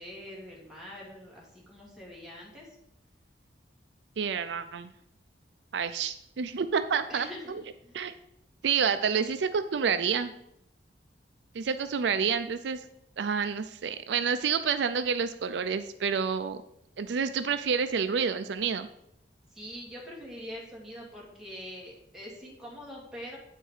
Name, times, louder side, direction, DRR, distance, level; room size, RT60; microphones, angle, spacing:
voice 1, 0.0-2.7 7.1-8.1 19.5-23.4, equal, ahead, -5 dB, 2.2 m, -44 dB
voice 2, 4.2-4.9 5.7-7.6 7.9-8.1 8.6-10.3 11.5-12.8 13.2-16.6 17.0-18.9, right 6 dB, 75° right, 11 dB, 0.4 m, -29 dB
8.9 x 4.6 x 4.8 m, 0.77 s
head